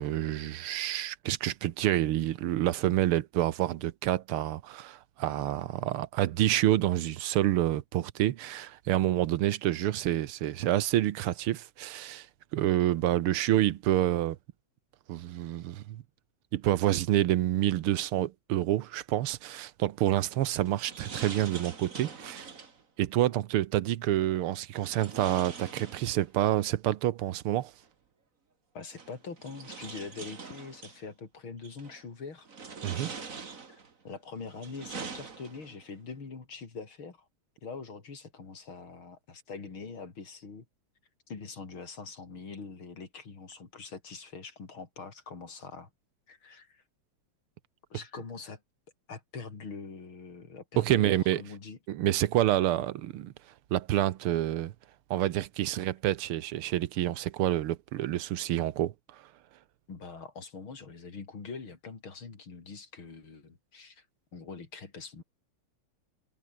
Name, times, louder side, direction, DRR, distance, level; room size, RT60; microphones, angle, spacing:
voice 1, 0.0-12.3 12.5-14.4 15.1-16.0 16.5-22.4 23.0-27.7 32.8-33.1 50.8-51.4 51.9-53.3 53.7-54.7 55.1-58.9, right 13 dB, 85° right, 1.8 m, -28 dB
sound 1, 20.3-22.8 24.8-26.5 27.8-27.9 28.9-31.0 31.6-32.0 32.5-33.9 34.4-35.8, right 5 dB, 40° right, 2.4 m, -44 dB
voice 2, 28.7-32.5 33.7-33.8 34.0-37.3 37.6-40.7 41.3-45.9 46.3-46.8 47.9-48.6 49.1-51.8 59.9-64.1 64.3-65.2, left 4 dB, 70° left, 4.3 m, -43 dB
omnidirectional pair, 2.4 m